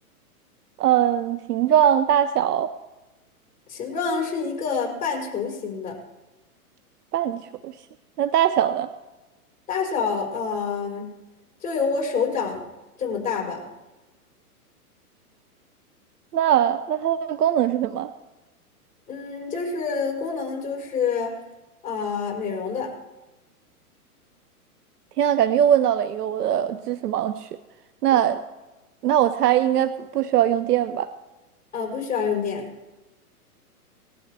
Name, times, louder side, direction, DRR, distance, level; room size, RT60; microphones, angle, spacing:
voice 1, 0.8-2.7 7.1-7.7 8.2-8.9 16.3-18.1 25.2-27.5 28.0-28.4 29.0-31.1, right 10 dB, 85° right, 13 dB, 0.8 m, -21 dB
voice 2, 3.7-6.0 9.7-11.1 11.6-12.6 13.0-13.7 19.1-21.4 21.8-22.9 28.1-28.2 31.7-32.7, left 5 dB, 20° left, -1 dB, 4.5 m, -27 dB
20.0 x 13.0 x 3.4 m, 1.1 s
hypercardioid pair, 135°, 46 cm